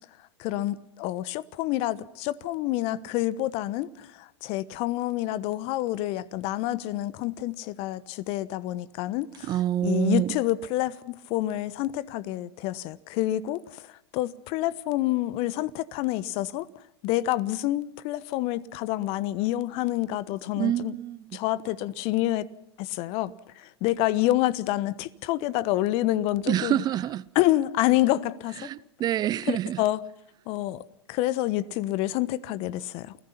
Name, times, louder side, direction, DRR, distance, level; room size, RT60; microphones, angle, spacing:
voice 1, 0.4-9.5 9.8-13.9 14.1-16.7 17.0-21.0 21.3-22.5 22.8-23.3 23.6-26.8 27.3-28.7 29.5-30.0 30.5-30.8 31.1-33.2, left 15 dB, 45° left, 1.1 m, -28 dB
voice 2, 9.4-10.4 20.6-21.4 26.5-27.3 28.6-29.8, right 12 dB, 30° right, 0.7 m, -27 dB
29.0 x 16.5 x 5.9 m
figure-of-eight pair, 95°, 14 cm